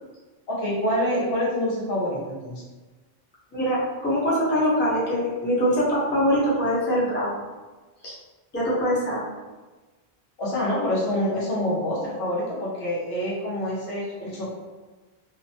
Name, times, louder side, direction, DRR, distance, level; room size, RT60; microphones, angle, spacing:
voice 1, 0.5-2.6 10.4-14.5, left 1 dB, 75° left, -6 dB, 1.1 m, -26 dB
voice 2, 3.5-7.4 8.0-8.2 8.5-9.2, equal, 15° left, -8 dB, 0.6 m, -23 dB
2.9 x 2.1 x 2.7 m, 1.3 s
omnidirectional pair, 1.1 m